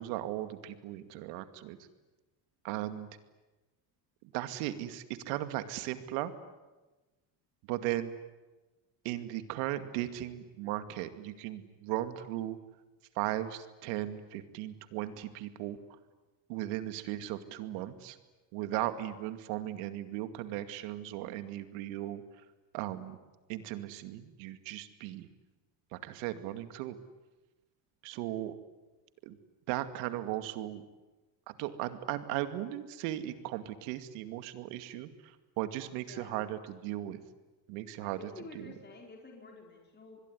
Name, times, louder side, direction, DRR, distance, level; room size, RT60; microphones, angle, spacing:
voice 1, 0.0-1.8 2.6-3.1 4.3-6.3 7.7-8.1 9.0-12.6 13.1-15.8 16.5-18.2 18.5-22.4 22.7-23.2 23.5-25.3 25.9-27.0 28.0-28.5 29.2-29.4 29.7-30.8 31.5-37.2 37.7-38.7, right 14 dB, 85° right, 10 dB, 2.4 m, -37 dB
voice 2, 36.1-36.5 38.0-40.2, left 3 dB, 20° left, 1 dB, 4.7 m, -50 dB
26.0 x 21.5 x 9.9 m, 1.1 s
cardioid pair, 115°, 47 cm